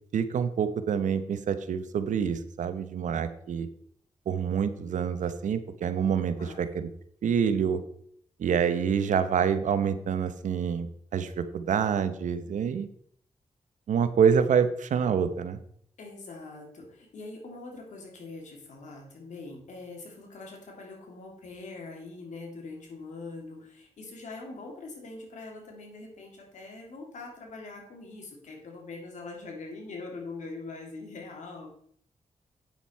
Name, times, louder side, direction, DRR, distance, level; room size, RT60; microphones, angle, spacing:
voice 1, 0.1-3.7 4.3-6.9 7.2-7.8 8.4-12.9 13.9-15.6, right 7 dB, 85° right, 11 dB, 0.9 m, -27 dB
voice 2, 6.4-6.8 16.0-31.7, left 3 dB, 80° left, 0 dB, 3.0 m, -43 dB
9.0 x 7.2 x 4.6 m, 0.65 s
cardioid pair, 55°, 12 cm